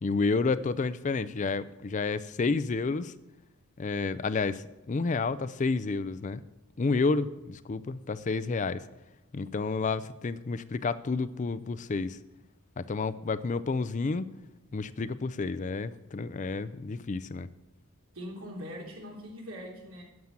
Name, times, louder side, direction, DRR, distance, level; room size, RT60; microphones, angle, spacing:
voice 1, 0.0-3.1 3.8-6.4 6.8-8.8 9.3-12.2 12.8-14.3 14.7-17.5, left 4 dB, 35° left, 15 dB, 0.4 m, -30 dB
voice 2, 18.1-20.0, equal, 70° right, -1 dB, 3.3 m, -41 dB
9.6 x 7.2 x 8.9 m, 1.0 s
head